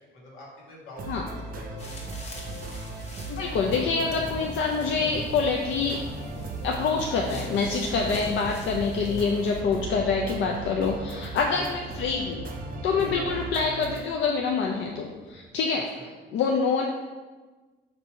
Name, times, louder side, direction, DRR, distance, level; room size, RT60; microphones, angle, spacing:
voice 1, 0.1-2.2 11.5-11.9 13.0-13.2 15.9-16.1, left 1 dB, 90° left, -4 dB, 1.4 m, -45 dB
sound 1, 1.0-14.1, right 2 dB, 45° right, 0.6 m, -38 dB
sound 2, 1.8-9.6, left 2 dB, 35° left, 0.9 m, -48 dB
voice 2, 3.3-6.0 6.6-12.4 12.8-15.8 16.3-16.9, left 5 dB, 70° left, 1 dB, 0.5 m, -26 dB
Thunder / Rain, 3.4-15.5, right 1 dB, 5° left, 0.7 m, -42 dB
4.5 x 2.7 x 4.3 m, 1.3 s
cardioid pair, 90°, 20 cm